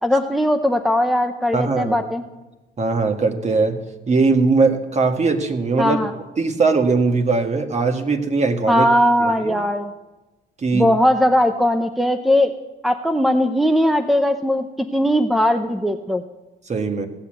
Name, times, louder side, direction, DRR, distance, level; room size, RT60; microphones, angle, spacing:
voice 1, 0.0-2.2 5.8-6.1 8.7-9.9 10.7-12.5 12.8-16.2, left 1 dB, ahead, 8 dB, 0.8 m, -19 dB
voice 2, 1.5-2.0 2.8-3.8 4.1-6.0 6.4-8.9 9.2-9.6 10.6-10.9 16.7-17.1, right 4 dB, 35° right, 6 dB, 1.8 m, -20 dB
16.0 x 8.5 x 7.7 m, 1.1 s
supercardioid pair, 80°, 19 cm